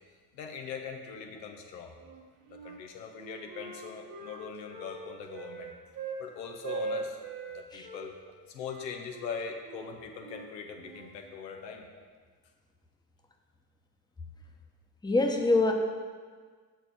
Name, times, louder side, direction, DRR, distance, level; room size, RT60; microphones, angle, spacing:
voice 1, 0.3-1.9 2.5-5.7 6.2-7.2 7.5-8.1 8.5-11.9, left 6 dB, 85° left, 3 dB, 0.9 m, -41 dB
Wind instrument woodwind instrument, 2.0-2.8 3.2-6.2 6.6-8.1 8.6-11.1, right 3 dB, 45° right, 1.2 m, -41 dB
voice 2, 15.0-15.7, left 2 dB, 10° left, 3 dB, 0.9 m, -24 dB
6.6 x 4.7 x 6.0 m, 1.6 s
hypercardioid pair, 60°, 49 cm